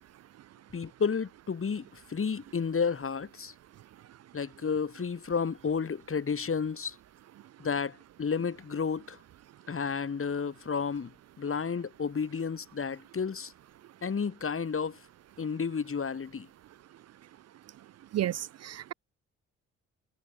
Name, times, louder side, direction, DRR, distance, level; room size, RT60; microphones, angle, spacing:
voice 1, 0.7-3.5 4.3-7.0 7.6-9.2 9.7-11.1 11.4-13.5 14.0-15.0 15.4-16.5, left 5 dB, 40° left, 3.6 m, -31 dB
voice 2, 18.1-18.9, right 12 dB, 50° right, 0.5 m, -32 dB
supercardioid pair, 55°, 32 cm